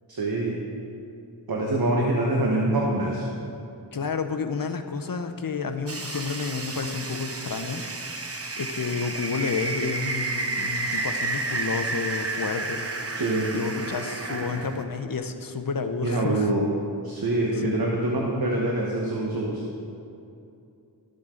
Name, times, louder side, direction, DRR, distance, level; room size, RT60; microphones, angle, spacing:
voice 1, 0.1-0.6 1.5-3.3 13.1-13.5 16.0-16.6 17.0-19.6, right 2 dB, 55° right, -3 dB, 1.3 m, -25 dB
voice 2, 3.9-7.8 8.1-12.8 13.5-16.5 17.5-18.1, left 5 dB, 50° left, 7 dB, 0.7 m, -30 dB
sound 1, 5.9-14.8, right 3 dB, 35° right, 0.8 m, -31 dB
13.5 x 7.6 x 3.8 m, 2.6 s
wide cardioid pair, 60°, 43 cm